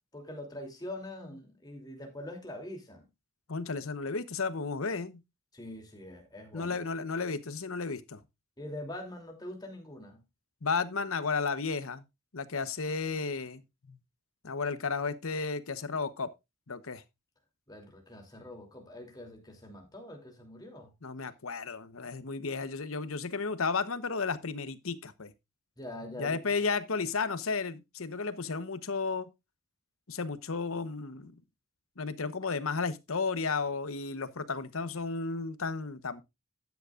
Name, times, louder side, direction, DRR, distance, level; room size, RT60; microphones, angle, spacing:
voice 1, 0.0-3.0 5.5-6.8 8.6-10.2 17.7-20.9 25.8-26.4, left 1 dB, 20° left, 3.0 m, -44 dB
voice 2, 3.5-5.2 6.5-8.2 10.6-12.0 12.3-14.0 14.4-16.3 16.7-17.0 21.0-25.3 26.2-29.3 30.1-31.3 32.0-36.2, left 4 dB, 80° left, 1.0 m, -33 dB
13.0 x 9.4 x 2.5 m
head